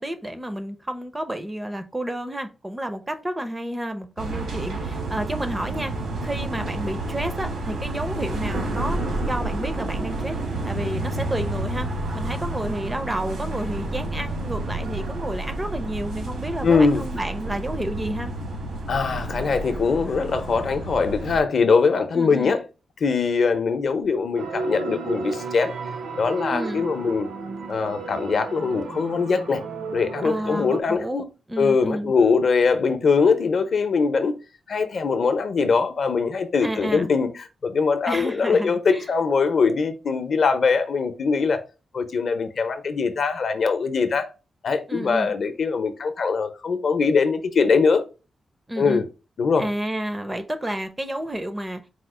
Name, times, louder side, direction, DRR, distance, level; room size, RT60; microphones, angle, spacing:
voice 1, 0.0-5.9 6.2-10.4 10.6-11.9 12.1-18.3 22.1-22.5 26.5-26.9 30.2-31.2 31.5-32.1 36.6-37.1 38.1-39.1 44.9-45.3 48.7-49.0 49.6-51.8, right 1 dB, 15° right, 0.4 m, -30 dB
sound 1, 4.2-21.4, right 2 dB, 90° right, 1.3 m, -30 dB
voice 2, 16.6-17.1 18.9-22.6 23.0-25.7 26.1-27.3 27.7-29.6 29.9-31.3 31.6-34.3 34.7-41.6 41.9-44.3 44.6-48.0 48.8-49.0 49.4-49.7, left 5 dB, 50° left, 0.6 m, -22 dB
sound 2, 24.4-30.8, right 4 dB, 65° right, 0.5 m, -33 dB
4.3 x 2.4 x 4.8 m
wide cardioid pair, 180°, 0 cm